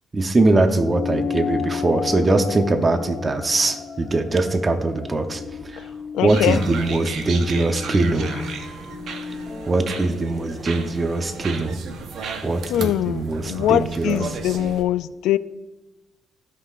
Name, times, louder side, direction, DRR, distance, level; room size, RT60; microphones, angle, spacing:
voice 1, 0.1-5.9 6.2-8.3 9.7-11.8 12.4-14.4, right 2 dB, 30° right, 7 dB, 0.8 m, -21 dB
sound 1, 0.8-5.6, left 7 dB, 70° left, 0.7 m, -31 dB
sound 2, 2.8-11.9, left 4 dB, 40° left, 1.5 m, -38 dB
voice 2, 6.1-6.6 12.7-15.4, left 12 dB, 90° left, 15 dB, 0.3 m, -22 dB
sound 3, 6.3-14.8, right 5 dB, 70° right, 0.9 m, -35 dB
16.0 x 5.7 x 2.5 m, 1.1 s
cardioid pair, 90°, 0 cm